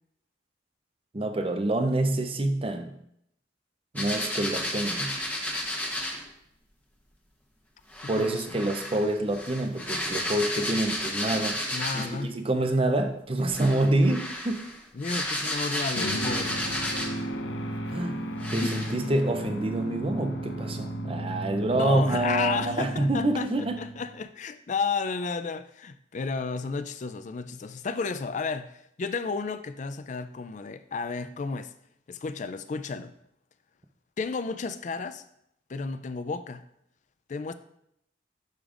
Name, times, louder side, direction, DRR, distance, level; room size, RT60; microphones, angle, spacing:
voice 1, 1.1-2.9 3.9-5.1 8.1-11.6 11.9-14.7 17.9-18.2 18.5-23.8, right 1 dB, 30° right, 0.6 m, -27 dB
sound 1, 3.9-6.2 7.9-12.2 13.4-17.3 17.9-18.0 18.4-18.9, left 1 dB, 10° left, 0.9 m, -32 dB
voice 2, 8.1-8.4 11.7-12.3 14.9-16.7 18.6-18.8 21.7-31.7 32.1-33.1 34.2-35.2 35.7-36.6 37.3-37.5, left 4 dB, 40° left, 0.4 m, -32 dB
sound 2, 16.0-24.2, right 1 dB, 85° left, 0.7 m, -34 dB
11.0 x 5.1 x 2.5 m
head